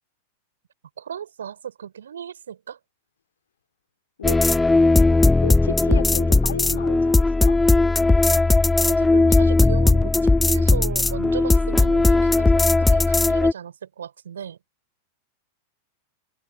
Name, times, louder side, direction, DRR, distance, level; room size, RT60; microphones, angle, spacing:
voice 1, 1.0-2.8 8.8-14.6, right 8 dB, 65° right, 3.9 m, -36 dB
sound 1, 4.2-13.5, left 3 dB, 10° left, 0.6 m, -17 dB
voice 2, 5.4-7.6, left 8 dB, 65° left, 2.5 m, -31 dB
figure-of-eight pair, 90°, 0 cm